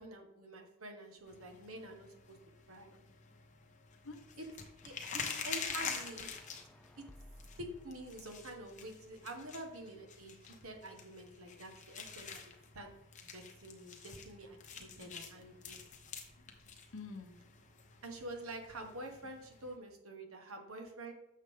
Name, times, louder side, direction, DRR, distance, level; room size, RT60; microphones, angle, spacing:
voice 1, 0.0-2.4 2.7-2.9 4.4-4.5 4.8-6.3 7.0-7.1 7.6-12.9 13.2-15.8 18.0-21.1, right 1 dB, 80° right, 4 dB, 1.6 m, -48 dB
sound 1, 1.3-19.8, left 6 dB, 35° left, 1.1 m, -47 dB
voice 2, 2.9-3.2 4.0-4.2 10.5-10.6 14.7-15.6 16.4-17.5, left 4 dB, 70° left, 5 dB, 0.9 m, -52 dB
sound 2, 4.8-10.0, equal, 5° left, 0.3 m, -61 dB
9.8 x 6.5 x 3.8 m, 0.89 s
head